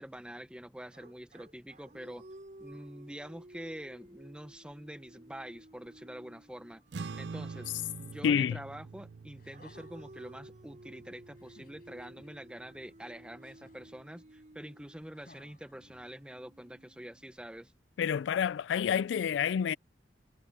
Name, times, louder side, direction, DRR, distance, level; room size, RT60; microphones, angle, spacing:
voice 1, 0.0-2.3 2.6-6.8 7.2-7.7 8.0-17.7, equal, 5° right, 0.9 m, -46 dB
sound 1, 0.9-9.0 9.5-17.6, right 1 dB, 45° right, 4.7 m, -55 dB
sound 2, 6.9-13.6, right 4 dB, 65° right, 0.5 m, -46 dB
voice 2, 8.2-8.6 18.0-19.8, left 7 dB, 80° left, 0.3 m, -28 dB
sound 3, 9.4-10.2 11.4-12.3 13.4-14.0 15.1-16.3 17.3-17.4, left 2 dB, 50° left, 6.8 m, -61 dB
head